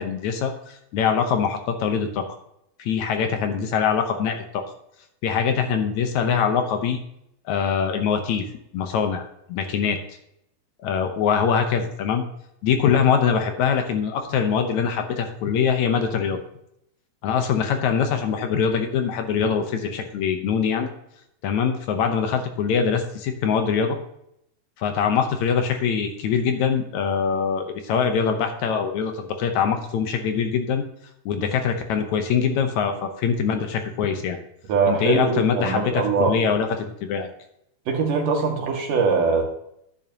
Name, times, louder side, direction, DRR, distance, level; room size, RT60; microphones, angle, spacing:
voice 1, 0.0-2.3 2.8-4.6 5.2-7.0 7.5-8.5 8.7-9.2 9.5-10.0 10.8-12.2 12.6-16.4 17.2-20.9 21.4-24.0 24.8-30.8 31.3-34.4 34.9-37.3, left 6 dB, 70° left, 6 dB, 1.9 m, -23 dB
voice 2, 34.7-36.3 37.9-39.4, right 5 dB, 70° right, 1 dB, 3.2 m, -22 dB
11.0 x 9.2 x 2.9 m, 0.76 s
omnidirectional pair, 4.0 m